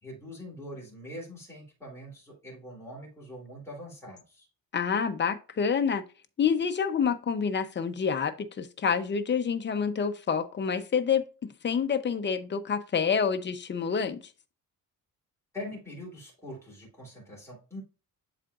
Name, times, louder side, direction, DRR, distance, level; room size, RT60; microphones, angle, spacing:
voice 1, 0.0-4.5 15.5-17.8, left 1 dB, 10° left, 3.0 m, -43 dB
voice 2, 4.7-6.0 6.4-14.2, left 6 dB, 30° left, 0.6 m, -28 dB
11.0 x 3.9 x 2.4 m
wide cardioid pair, 165°, 34 cm